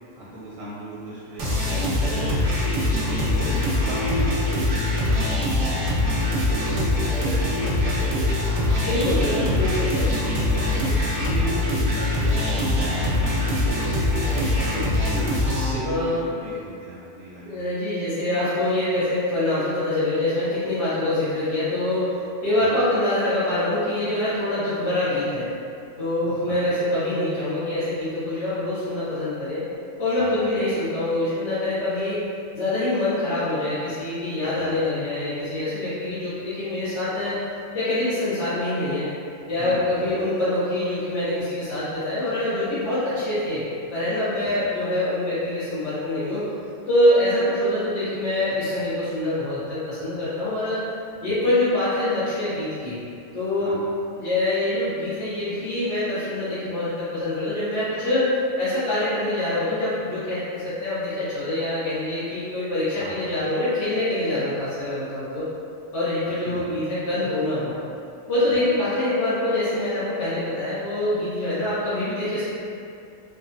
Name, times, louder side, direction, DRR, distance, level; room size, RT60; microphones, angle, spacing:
voice 1, 0.2-2.5 2.7-3.4 3.9-5.2 5.5-8.2 10.5-15.1 15.7-17.6 22.6-22.7 26.2-26.6 30.1-30.8 34.4-34.7 39.6-40.2 44.4-44.5 48.7-48.8 51.2-51.4 53.6-53.8 63.0-63.2 66.4-66.7 68.5-68.6 71.6-71.7, right 1 dB, 90° right, -8 dB, 1.0 m, -37 dB
sound 1, 1.4-15.7, left 1 dB, 65° right, 0.3 m, -23 dB
voice 2, 2.7-3.7 8.8-10.2 15.8-16.2 17.4-22.2 22.4-25.5 26.0-29.6 30.0-32.2 32.5-37.4 37.7-39.1 39.5-46.5 46.9-50.8 51.2-53.0 53.3-53.8 54.2-65.5 65.9-67.7 68.3-72.4, left 1 dB, 70° left, -14 dB, 1.1 m, -25 dB
3.3 x 2.2 x 2.6 m, 2.6 s
omnidirectional pair, 1.3 m